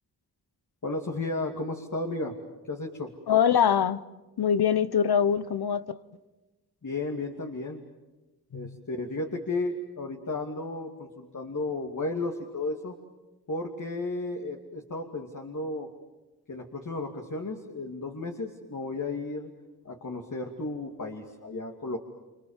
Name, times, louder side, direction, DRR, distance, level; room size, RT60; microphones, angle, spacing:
voice 1, 0.8-2.4 2.6-3.1 6.8-7.8 8.5-12.9 13.5-15.9 16.5-19.5 19.8-22.0, left 2 dB, 50° left, 2.8 m, -33 dB
voice 2, 3.3-4.0 4.4-6.0 8.5-8.8, left 8 dB, 70° left, 1.1 m, -23 dB
28.0 x 28.0 x 7.4 m
wide cardioid pair, 75°, 39 cm